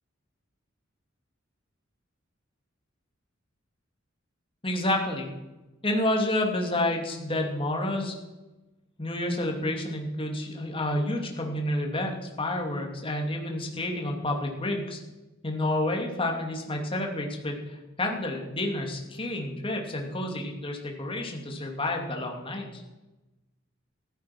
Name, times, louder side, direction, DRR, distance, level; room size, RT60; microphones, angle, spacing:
voice 1, 4.6-5.3 5.8-8.1 9.0-15.0 15.4-22.8, left 1 dB, 30° left, 2 dB, 2.6 m, -29 dB
15.0 x 13.0 x 6.1 m, 1.1 s
head